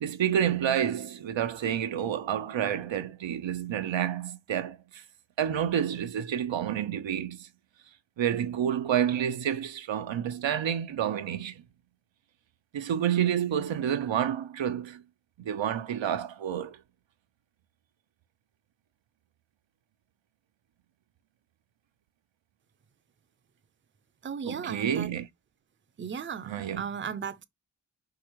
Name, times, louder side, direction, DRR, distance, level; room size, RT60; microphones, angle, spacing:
voice 1, 0.0-5.0 5.4-7.5 8.2-11.6 12.7-15.0 15.4-16.8 24.5-25.2 26.5-26.8, right 9 dB, 90° right, 0.7 m, -29 dB
voice 2, 24.2-25.1 26.0-27.4, right 7 dB, 25° right, 0.5 m, -36 dB
4.8 x 2.4 x 4.5 m
wide cardioid pair, 85°, 44 cm